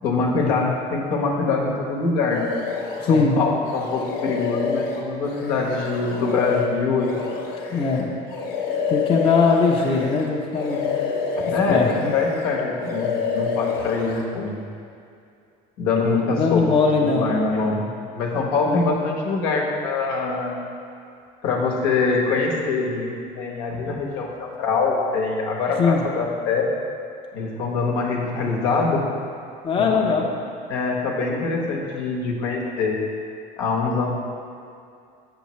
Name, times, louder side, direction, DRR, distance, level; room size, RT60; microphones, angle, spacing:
voice 1, 0.0-2.5 3.1-7.4 11.5-14.6 15.8-16.6 17.0-17.8 18.1-20.6 21.4-26.7 27.3-29.1 29.7-30.2 30.7-33.0 33.6-34.1, left 4 dB, 80° left, -1 dB, 1.2 m, -24 dB
sound 1, 2.3-3.3 3.7-10.3 10.5-12.5 12.8-14.2, left 5 dB, 60° left, 1.2 m, -28 dB
voice 2, 3.0-3.4 7.7-8.1 8.9-10.9 11.7-12.1 16.4-17.3 18.7-18.9 25.8-26.0 29.6-30.3, left 4 dB, 30° left, -1 dB, 0.7 m, -20 dB
7.0 x 6.9 x 3.1 m, 2.4 s
cardioid pair, 125°, 17 cm